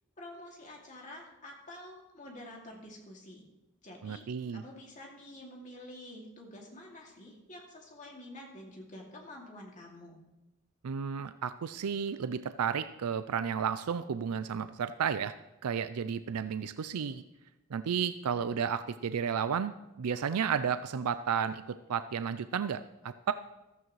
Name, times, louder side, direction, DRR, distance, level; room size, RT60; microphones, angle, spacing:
voice 1, 0.2-3.5 3.8-4.2 4.5-10.2, left 1 dB, 35° left, -1 dB, 2.5 m, -48 dB
voice 2, 4.0-4.6 10.8-15.3 15.6-17.2 17.7-23.3, right 7 dB, 90° right, 12 dB, 0.4 m, -32 dB
15.0 x 13.5 x 3.2 m, 0.98 s
head